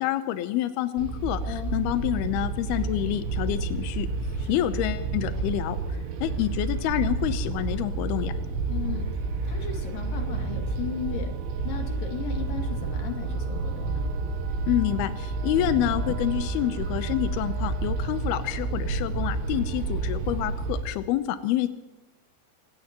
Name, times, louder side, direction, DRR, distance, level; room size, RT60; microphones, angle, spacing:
voice 1, 0.0-4.1 4.5-8.3 14.7-21.7, left 13 dB, 85° left, 10 dB, 2.2 m, -28 dB
sound 1, 1.0-20.8, right 3 dB, 80° right, 4.0 m, -30 dB
voice 2, 1.4-1.8 4.4-4.7 8.7-11.3 11.6-14.1, left 8 dB, 50° left, 2 dB, 3.7 m, -36 dB
25.5 x 18.0 x 3.0 m, 1.0 s
omnidirectional pair, 5.6 m